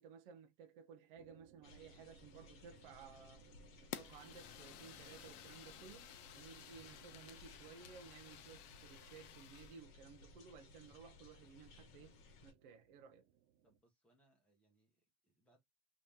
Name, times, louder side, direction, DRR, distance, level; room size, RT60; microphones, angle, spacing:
voice 1, 0.0-3.4 3.8-12.2 12.4-13.3, right 6 dB, 35° right, 0.4 m, -57 dB
sound 1, 1.2-13.8, right 9 dB, 80° right, 0.8 m, -68 dB
sound 2, 1.6-12.5, left 3 dB, 55° left, 1.1 m, -61 dB
Fire, 3.9-9.8, left 11 dB, 75° left, 0.7 m, -54 dB
voice 2, 4.3-4.7 6.7-7.1 12.0-12.2 13.6-15.6, right 1 dB, 5° left, 0.8 m, -76 dB
2.9 x 2.7 x 3.4 m
supercardioid pair, 170°, 46 cm